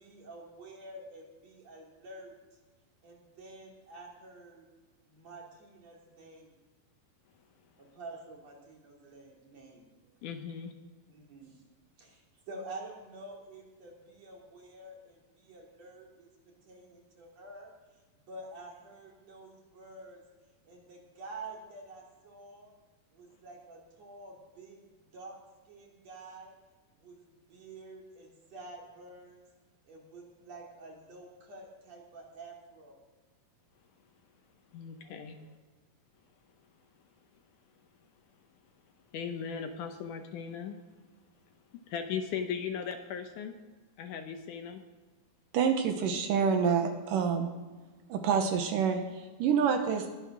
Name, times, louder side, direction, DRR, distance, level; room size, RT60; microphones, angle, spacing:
voice 1, 0.0-2.3 3.0-4.6 5.1-6.5 7.8-10.2 11.1-11.6 12.0-16.3 16.6-17.7 18.2-20.2 20.6-22.7 23.1-24.8 25.1-25.4 25.7-26.6 27.0-27.2 27.5-29.4 29.8-33.0 35.0-35.5, right 2 dB, 50° right, -1 dB, 3.8 m, -48 dB
voice 2, 10.2-10.7 34.7-35.4 39.1-40.8 41.9-43.5 44.0-44.8, left 7 dB, 70° left, 6 dB, 2.1 m, -37 dB
voice 3, 45.5-47.5 48.1-50.1, right 6 dB, 75° right, 6 dB, 2.5 m, -27 dB
21.0 x 7.7 x 6.1 m, 1.3 s
omnidirectional pair, 4.1 m